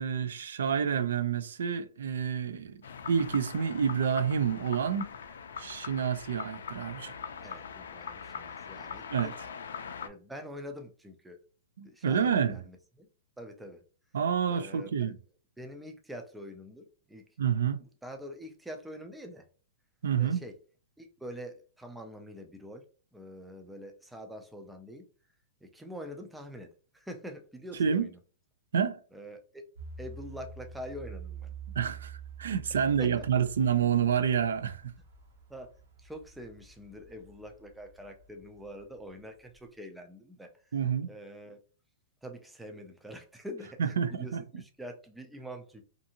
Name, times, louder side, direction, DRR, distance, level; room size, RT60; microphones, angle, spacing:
voice 1, 0.0-2.8 3.1-5.1 5.6-7.1 9.1-9.3 11.8-12.6 14.1-15.2 17.4-17.8 20.0-20.4 27.8-28.1 28.7-29.0 31.7-34.9 40.7-41.1 43.8-44.4, right 7 dB, 90° right, 0.4 m, -28 dB
sound 1, 2.8-10.1, left 6 dB, 90° left, 0.4 m, -42 dB
voice 2, 7.4-9.3 10.0-11.4 11.8-13.1 13.4-13.8 14.5-15.1 15.6-17.2 17.6-19.5 20.2-20.5 21.0-22.8 23.1-25.1 25.6-28.2 29.1-29.6 30.0-31.5 33.0-33.1 35.5-35.7 36.0-40.5 41.1-41.6 42.2-45.8, equal, 5° right, 0.3 m, -45 dB
sound 2, 29.7-39.1 39.5-39.6, right 5 dB, 55° right, 0.8 m, -47 dB
2.6 x 2.5 x 2.7 m
hypercardioid pair, 165°, 0 cm